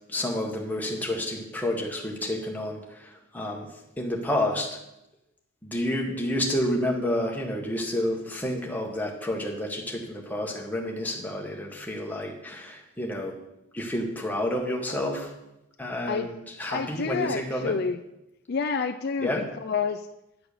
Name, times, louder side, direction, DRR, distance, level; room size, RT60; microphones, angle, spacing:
voice 1, 0.1-4.8 5.6-13.4 13.7-15.3 15.8-17.8 19.2-19.4, left 1 dB, 10° left, 0 dB, 1.5 m, -30 dB
voice 2, 16.7-18.0 18.5-20.1, left 5 dB, 45° left, 9 dB, 0.4 m, -29 dB
10.0 x 6.0 x 6.7 m, 0.88 s
head